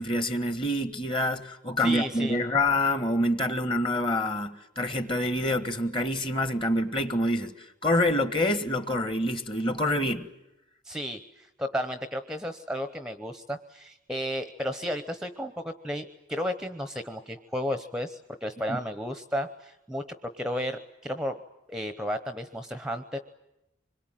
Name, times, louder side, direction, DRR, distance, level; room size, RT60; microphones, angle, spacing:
voice 1, 0.0-7.5 7.8-10.3 18.7-18.8, left 1 dB, 25° left, 1.6 m, -26 dB
voice 2, 1.8-2.4 10.8-21.4 21.7-23.2, equal, 5° right, 0.9 m, -33 dB
25.5 x 22.0 x 9.1 m
head